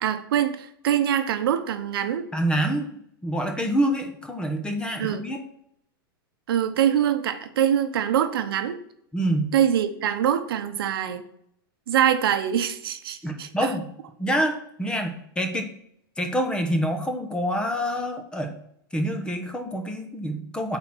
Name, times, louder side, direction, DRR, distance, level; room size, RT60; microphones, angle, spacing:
voice 1, 0.0-2.3 5.0-5.3 6.5-8.8 9.5-11.2 11.9-13.7, right 9 dB, 80° right, 9 dB, 0.9 m, -24 dB
voice 2, 2.3-3.0 3.2-5.4 9.1-9.5 13.2-13.9 14.2-15.7 16.2-18.5 18.9-20.8, equal, 10° left, 5 dB, 1.1 m, -26 dB
8.0 x 4.4 x 6.2 m, 0.71 s
supercardioid pair, 135°, 12 cm